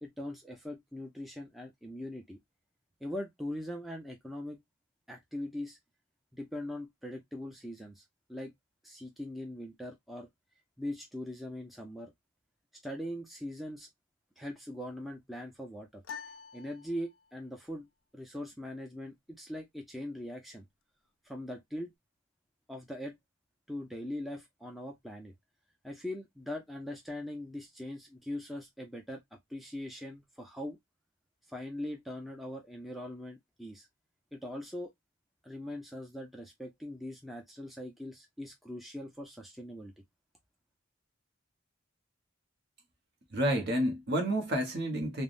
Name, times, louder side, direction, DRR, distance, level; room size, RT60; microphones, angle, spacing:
voice 1, 0.0-2.4 3.0-4.6 5.1-5.8 6.3-8.0 8.3-8.5 8.8-10.3 10.8-12.1 12.8-13.9 14.4-16.0 16.5-17.9 18.1-20.7 21.2-21.9 22.7-23.2 23.7-25.3 25.8-29.2 29.5-30.8 31.5-33.9 34.3-34.9 35.4-39.9, left 1 dB, ahead, 0.5 m, -41 dB
sound 1, 16.0-17.5, left 6 dB, 75° left, 0.4 m, -47 dB
voice 2, 43.3-45.2, right 1 dB, 50° right, 0.9 m, -30 dB
3.4 x 2.1 x 2.4 m
head